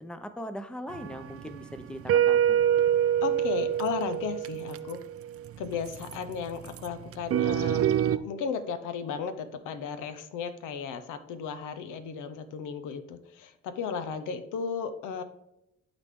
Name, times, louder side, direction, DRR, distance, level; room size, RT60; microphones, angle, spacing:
voice 1, 0.0-2.6, equal, 5° left, 10 dB, 0.6 m, -40 dB
sound 1, 0.9-8.2, right 10 dB, 50° right, 0.4 m, -27 dB
voice 2, 3.2-5.0 5.6-15.2, left 6 dB, 90° left, 10 dB, 0.8 m, -35 dB
11.5 x 4.1 x 3.6 m, 0.85 s
cardioid pair, 90°, 30 cm